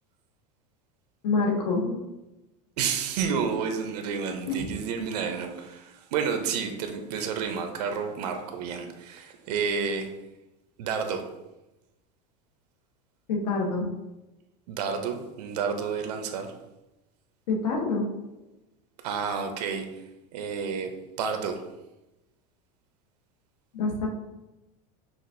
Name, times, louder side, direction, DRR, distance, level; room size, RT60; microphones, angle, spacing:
voice 1, 1.2-2.0 4.5-4.6 13.3-13.9 17.5-18.1 23.7-24.1, left 3 dB, 90° left, 0 dB, 1.1 m, -26 dB
voice 2, 2.8-10.1 10.8-11.2 14.7-16.5 19.0-19.9 20.3-20.9 21.2-21.6, right 6 dB, 90° right, 6 dB, 0.5 m, -30 dB
5.7 x 2.4 x 2.6 m, 0.98 s
supercardioid pair, 150°, 20 cm